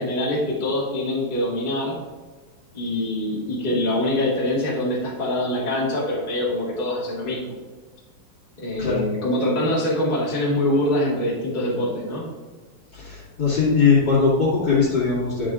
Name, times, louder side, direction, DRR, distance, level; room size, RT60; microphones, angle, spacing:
voice 1, 0.0-2.0 2.7-7.5 8.6-12.2, left 1 dB, 55° left, -6 dB, 0.5 m, -24 dB
voice 2, 12.9-15.5, left 5 dB, 35° left, -11 dB, 2.4 m, -20 dB
11.0 x 6.6 x 2.5 m, 1.4 s
omnidirectional pair, 4.5 m